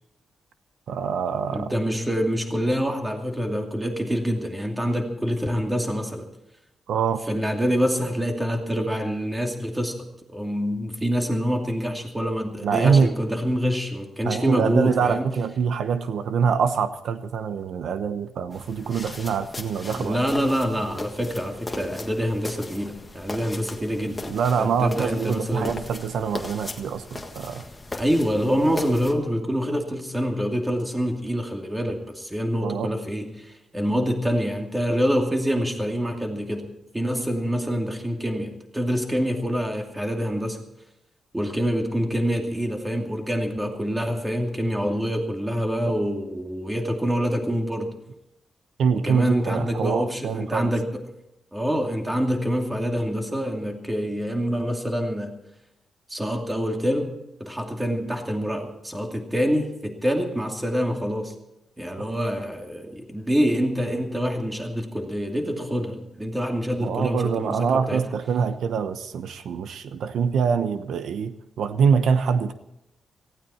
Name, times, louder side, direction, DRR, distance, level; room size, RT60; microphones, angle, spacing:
voice 1, 0.9-1.7 6.9-7.2 12.6-13.1 14.2-20.2 24.3-27.6 32.6-32.9 48.8-50.7 62.0-62.1 66.8-72.5, right 6 dB, 90° right, 11 dB, 0.9 m, -24 dB
voice 2, 1.5-6.3 7.3-9.9 10.3-15.2 19.9-25.8 27.9-36.7 36.9-40.6 41.3-47.9 49.0-51.0 51.5-55.3 56.1-61.3 61.8-68.0, equal, 10° right, 2 dB, 2.4 m, -26 dB
sound 1, 18.5-29.1, left 2 dB, 15° left, 1.6 m, -38 dB
18.5 x 16.0 x 4.3 m, 0.85 s
wide cardioid pair, 150°, 0 cm